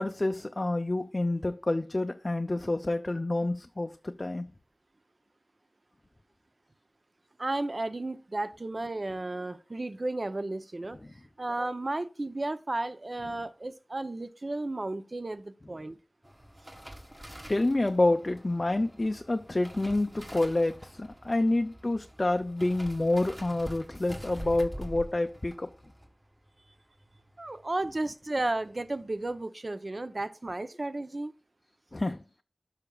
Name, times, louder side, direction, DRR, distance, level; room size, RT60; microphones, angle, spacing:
voice 1, 0.0-4.5 11.0-11.1 17.5-25.7 31.9-32.2, left 2 dB, 40° left, 0.4 m, -28 dB
voice 2, 7.4-11.0 11.4-16.0 27.4-31.3, right 2 dB, 50° right, 0.6 m, -33 dB
sound 1, 16.2-27.6 27.9-28.2 28.5-29.0 29.3-29.4, equal, 20° right, 1.5 m, -46 dB
12.0 x 5.8 x 2.3 m
wide cardioid pair, 65°, 0 cm